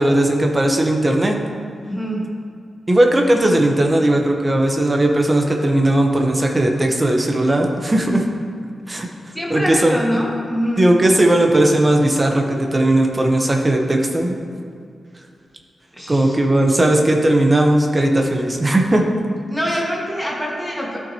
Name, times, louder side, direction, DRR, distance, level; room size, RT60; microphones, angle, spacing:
voice 1, 0.0-1.4 2.9-8.2 8.9-9.1 9.5-10.0 10.8-14.4 16.1-19.0, right 1 dB, 20° right, 2 dB, 0.8 m, -17 dB
voice 2, 1.9-2.3 9.3-10.9 15.9-16.4 19.5-21.0, equal, ahead, -4 dB, 1.5 m, -24 dB
13.0 x 6.0 x 2.8 m, 2.3 s
wide cardioid pair, 175°, 0 cm